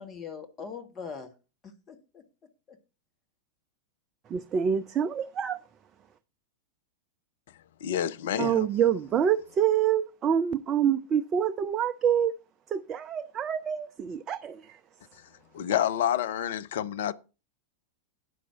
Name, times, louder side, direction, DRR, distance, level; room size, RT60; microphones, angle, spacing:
voice 1, 0.0-1.3 1.6-2.8, left 6 dB, 25° left, 1.6 m, -42 dB
voice 2, 4.3-5.6 8.4-12.4 12.7-14.8, right 8 dB, 30° right, 0.5 m, -26 dB
voice 3, 7.8-8.7 15.5-17.1, left 10 dB, 55° left, 0.5 m, -28 dB
10.0 x 6.0 x 5.8 m
figure-of-eight pair, 90°, 0 cm